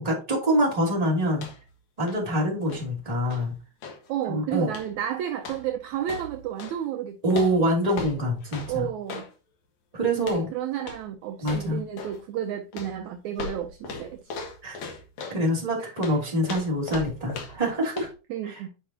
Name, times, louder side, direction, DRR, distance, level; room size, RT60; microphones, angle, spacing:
voice 1, 0.0-1.5 2.0-3.5 4.3-4.7 7.2-8.9 9.9-10.5 11.4-11.8 14.6-14.8 15.3-18.1 18.4-18.6, equal, 10° right, 2.5 m, -25 dB
sound 1, 1.3-1.8 2.0-4.1 4.7-5.0 5.4-6.8 7.3-9.3 10.2-10.5 10.8-11.1 11.4-12.2 12.7-15.4 16.0-17.7 18.0-18.1, left 4 dB, 60° left, 2.5 m, -39 dB
voice 2, 4.1-7.5 8.7-9.3 10.1-14.3 15.8-15.9 18.3-18.7, right 10 dB, 75° right, 1.8 m, -32 dB
10.0 x 5.3 x 2.8 m
omnidirectional pair, 3.8 m